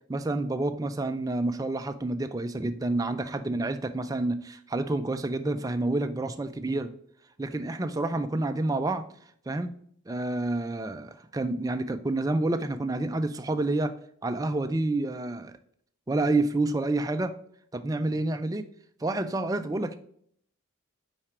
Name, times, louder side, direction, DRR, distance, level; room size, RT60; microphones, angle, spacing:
voice 1, 0.1-6.9 7.4-9.0 9.5-9.8 10.1-13.9 14.2-15.5 16.1-17.4 17.7-18.7 19.0-20.0, right 2 dB, 15° right, 8 dB, 0.3 m, -28 dB
4.8 x 4.4 x 4.4 m, 0.63 s
head